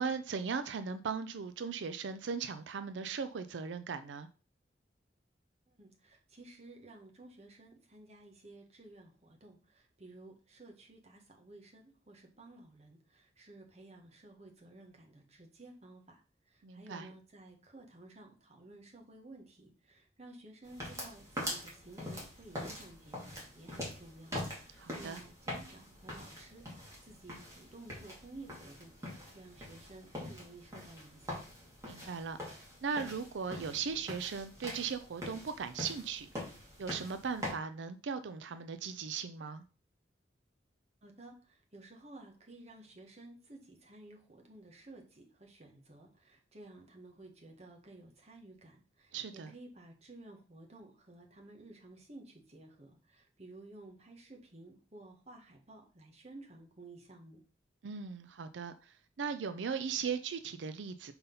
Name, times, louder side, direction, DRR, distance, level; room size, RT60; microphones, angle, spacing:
voice 1, 0.0-4.3 16.6-17.1 24.8-25.2 31.8-39.6 49.1-49.5 57.8-61.1, right 6 dB, 90° right, 0.5 m, -38 dB
voice 2, 5.8-16.2 16.5-31.4 41.0-57.4, right 2 dB, 35° right, 1.4 m, -54 dB
sound 1, 20.6-37.5, left 1 dB, 15° right, 2.3 m, -44 dB
5.6 x 3.9 x 5.4 m
head